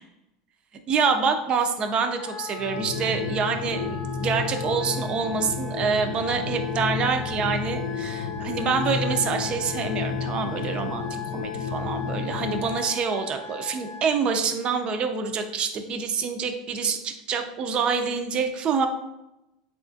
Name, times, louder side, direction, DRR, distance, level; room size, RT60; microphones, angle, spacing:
voice 1, 0.9-18.9, right 5 dB, 35° right, 6 dB, 0.4 m, -26 dB
Wind instrument woodwind instrument, 2.1-14.2, left 4 dB, 20° left, 0.4 m, -39 dB
sound 1, 2.6-12.8, left 5 dB, 80° left, 0.4 m, -31 dB
4.1 x 2.4 x 2.6 m, 0.91 s
supercardioid pair, 125°, 3 cm